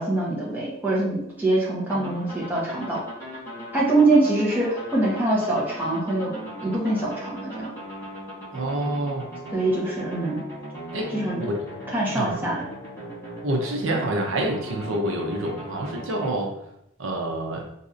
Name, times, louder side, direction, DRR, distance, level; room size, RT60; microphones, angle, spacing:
voice 1, 0.0-3.0 3.7-7.7 9.5-10.4 11.1-11.4 11.9-12.7, right 2 dB, 10° right, -7 dB, 0.9 m, -24 dB
sound 1, 1.9-16.3, equal, 15° left, 1.3 m, -38 dB
voice 2, 8.5-9.3 10.9-11.5 12.1-12.5 13.4-16.5 17.0-17.7, right 1 dB, 80° right, 1 dB, 0.6 m, -27 dB
4.0 x 2.7 x 2.5 m, 0.77 s
head